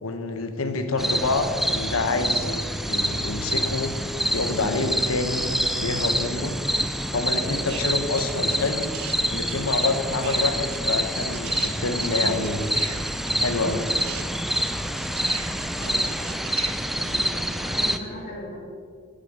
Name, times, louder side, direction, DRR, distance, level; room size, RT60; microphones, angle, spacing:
voice 1, 0.0-2.6 2.8-3.9 4.3-6.6 7.1-8.8 9.3-12.7 13.4-13.8, left 3 dB, 75° left, 8 dB, 0.9 m, -27 dB
sound 1, 1.0-18.0, equal, ahead, 0.3 m, -27 dB
sound 2, 7.7-9.2 9.4-17.3, right 10 dB, 85° right, 0.7 m, -40 dB
voice 2, 15.8-16.1 16.9-18.5, equal, 45° left, -8 dB, 2.0 m, -38 dB
9.2 x 8.3 x 5.4 m, 2.2 s
head